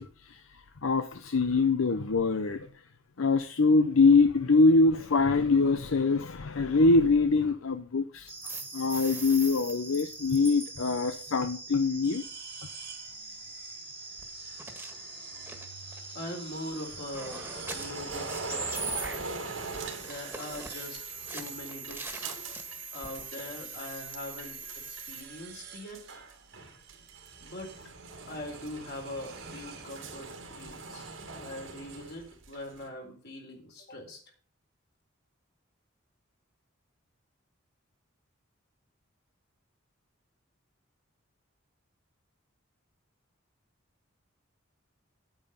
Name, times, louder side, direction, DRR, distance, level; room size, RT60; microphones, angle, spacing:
voice 1, 0.0-2.7 3.2-8.3 8.7-12.2, left 3 dB, 80° left, 9 dB, 0.7 m, -24 dB
sound 1, 8.3-25.2, right 3 dB, 10° right, 1.7 m, -41 dB
sound 2, 12.0-22.2 22.5-30.4, right 8 dB, 50° right, 1.5 m, -51 dB
voice 2, 16.1-19.0 20.0-21.0 21.3-22.3 22.9-24.6 24.9-26.0 27.4-27.7 28.3-34.2, left 1 dB, 50° left, 1 dB, 3.9 m, -42 dB
sound 3, 16.5-23.6 23.8-25.4 25.7-32.9, right 3 dB, 75° right, 2.1 m, -42 dB
8.9 x 8.9 x 5.5 m, 0.41 s
head